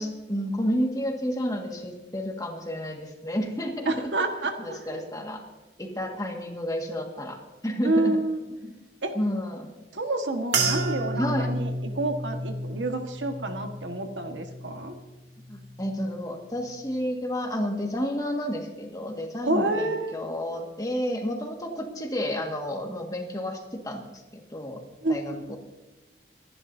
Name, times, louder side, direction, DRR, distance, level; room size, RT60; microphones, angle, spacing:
voice 1, 0.0-4.1 4.6-5.5 5.8-8.2 8.6-8.7 9.1-9.7 11.1-11.5 15.5-24.8 25.1-25.6, equal, 20° left, 2 dB, 1.8 m, -31 dB
voice 2, 3.9-4.8 7.8-8.4 9.0-9.1 9.9-11.7 11.9-15.0 19.4-20.2 25.0-25.6, right 2 dB, 85° right, 5 dB, 1.6 m, -28 dB
sound 1, 10.5-15.1 15.4-16.0 16.6-16.9, right 2 dB, 65° right, 2.1 m, -31 dB
25.5 x 11.0 x 2.7 m, 1.2 s
head